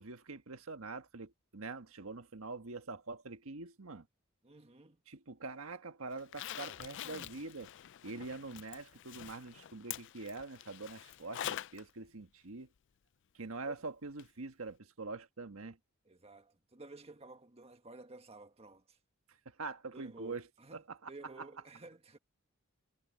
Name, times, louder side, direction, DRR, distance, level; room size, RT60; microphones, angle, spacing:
voice 1, 0.0-4.1 5.1-7.7 8.0-12.7 13.3-15.8 19.3-20.4 20.7-21.1, right 3 dB, 85° right, 1.4 m, -44 dB
voice 2, 4.4-5.0 13.6-13.7 16.0-19.0 19.9-22.2, right 2 dB, 30° right, 1.6 m, -53 dB
Zipper (clothing), 6.2-11.8 12.2-12.3 14.2-14.3 14.7-14.8, left 11 dB, 60° left, 0.4 m, -45 dB
head